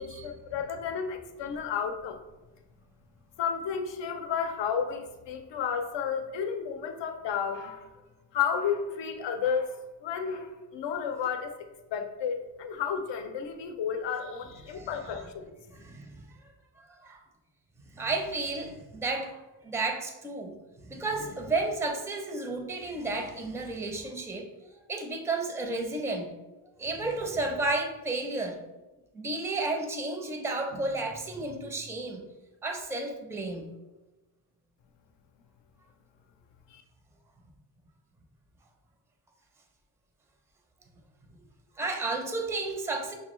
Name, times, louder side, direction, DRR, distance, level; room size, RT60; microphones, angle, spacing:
voice 1, 0.0-2.2 3.4-7.9 8.3-11.6 11.9-15.5 36.7-36.8, left 7 dB, 80° left, 6 dB, 0.6 m, -32 dB
voice 2, 14.7-15.2 15.7-16.2 16.9-17.2 17.9-20.6 20.8-24.5 24.9-26.3 26.8-28.6 29.1-32.2 32.6-33.7 41.8-43.1, right 2 dB, 5° right, 3 dB, 0.4 m, -32 dB
6.1 x 2.2 x 3.0 m, 1.1 s
cardioid pair, 105°, 43 cm